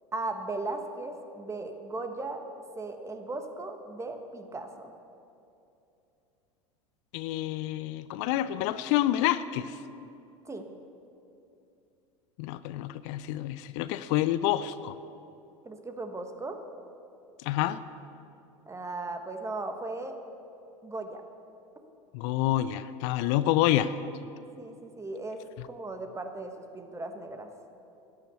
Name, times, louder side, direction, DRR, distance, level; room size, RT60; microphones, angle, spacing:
voice 1, 0.1-2.4 2.7-4.9 10.4-10.7 15.6-16.6 18.7-20.2 20.8-21.2 24.6-27.5, right 2 dB, 15° right, 6 dB, 1.4 m, -37 dB
voice 2, 7.1-9.8 12.4-15.0 17.4-17.8 22.1-23.9, left 13 dB, 60° left, 14 dB, 0.6 m, -28 dB
11.5 x 10.5 x 8.3 m, 2.7 s
hypercardioid pair, 85°, 17 cm